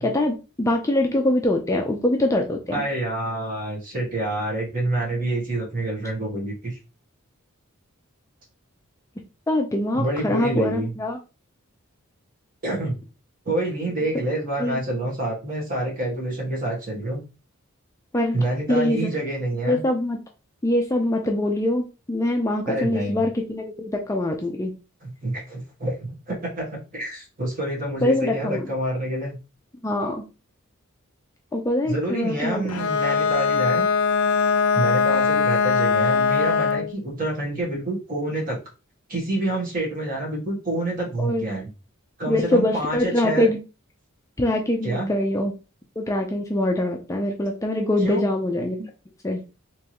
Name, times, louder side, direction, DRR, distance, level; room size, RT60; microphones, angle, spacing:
voice 1, 0.0-2.8 9.5-11.2 14.6-14.8 18.1-18.4 18.7-19.1 19.7-20.2 20.6-24.7 28.0-28.7 29.8-30.2 31.5-32.7 41.2-41.5 42.3-43.6 44.4-45.5 46.0-48.8 49.2-49.4, left 1 dB, 15° left, 2 dB, 0.4 m, -23 dB
voice 2, 2.7-6.8 9.9-10.9 12.6-13.0 13.4-17.2 18.3-19.8 22.7-23.2 25.0-29.3 31.8-33.8 34.7-38.6 39.1-41.7 42.2-43.5 44.8-45.1 48.0-48.2 48.8-48.9, right 1 dB, 40° right, -2 dB, 1.6 m, -27 dB
Bowed string instrument, 32.7-37.0, left 5 dB, 80° left, 0.4 m, -21 dB
3.5 x 3.0 x 2.9 m, 0.30 s
head